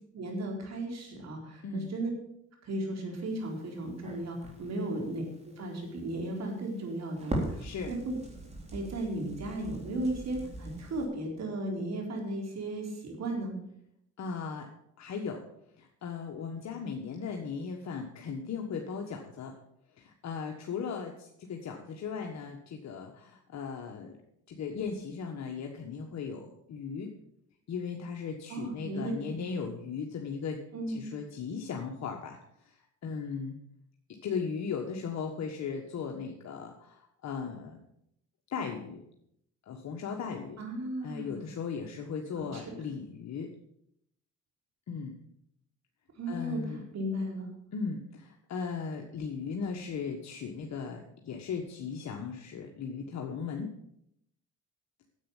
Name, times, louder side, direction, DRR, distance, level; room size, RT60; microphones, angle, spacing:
voice 1, 0.1-2.1 2.6-8.1 8.7-13.5 28.5-29.4 30.7-31.0 40.6-41.4 42.5-42.6 46.2-46.6 46.9-47.5, right 1 dB, 60° right, 1 dB, 4.2 m, -35 dB
Crackle, 3.3-11.0, right 1 dB, 20° right, 3.9 m, -41 dB
voice 2, 7.6-7.9 14.2-14.7 15.0-15.4 15.8-19.5 20.0-24.1 24.5-27.1 27.7-30.6 30.9-32.4 32.6-32.7 33.0-33.6 34.2-37.8 38.5-39.0 39.7-40.6 41.0-43.5 44.9-45.1 46.3-46.8 47.7-53.7, left 5 dB, 65° left, 2 dB, 1.5 m, -37 dB
10.0 x 8.2 x 7.3 m, 0.76 s
cardioid pair, 90°, 30 cm